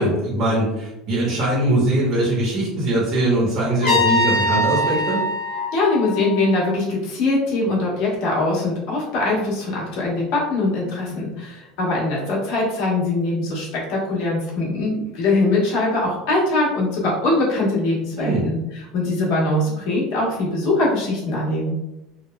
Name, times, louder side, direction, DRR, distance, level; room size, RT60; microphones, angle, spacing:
voice 1, 0.0-5.2 18.2-18.4, right 1 dB, 45° right, -5 dB, 0.9 m, -21 dB
Trumpet, 3.8-6.8, left 1 dB, 80° left, 1.4 m, -22 dB
voice 2, 5.7-18.6 18.9-21.8, left 2 dB, 60° left, -5 dB, 1.1 m, -22 dB
3.3 x 2.1 x 2.2 m, 0.91 s
cardioid pair, 160°, 0 cm